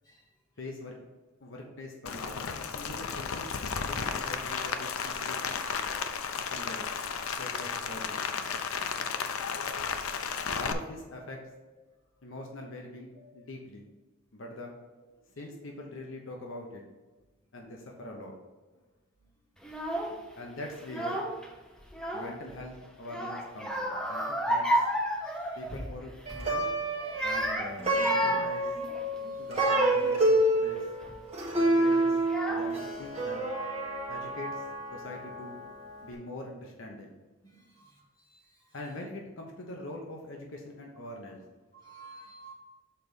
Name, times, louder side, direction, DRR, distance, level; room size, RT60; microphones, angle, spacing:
voice 1, 0.6-1.0 1.4-2.4 2.7-5.6 6.3-6.9 7.4-8.2 10.5-11.4 12.2-13.8 14.3-14.7 15.4-16.8 17.5-18.4 20.4-21.2 22.1-24.9 25.6-26.7 27.2-28.7 29.4-30.9 31.5-32.2 32.5-33.5 34.1-34.7 34.9-35.6 36.0-37.2 38.7-41.4, left 1 dB, 65° left, 0 dB, 0.9 m, -43 dB
Rain, 2.1-10.7, left 6 dB, 90° left, 0.5 m, -33 dB
Child speech kid speaking / Crying sobbing, 19.6-20.2 20.8-21.5 21.8-22.6 23.1-25.9 26.2-26.5 27.0-30.1 30.8-31.1 31.9-32.0 32.3-33.0, equal, 5° left, 0.7 m, -32 dB
voice 2, 24.0-24.3 25.2-25.6 29.1-29.5 31.2-31.3 37.4-38.0 38.3-38.4 41.8-42.5, equal, 20° left, -5 dB, 1.7 m, -51 dB
Plucked string instrument, 26.3-35.7, right 1 dB, 30° right, 1.3 m, -28 dB
6.8 x 4.0 x 5.1 m, 1.2 s
head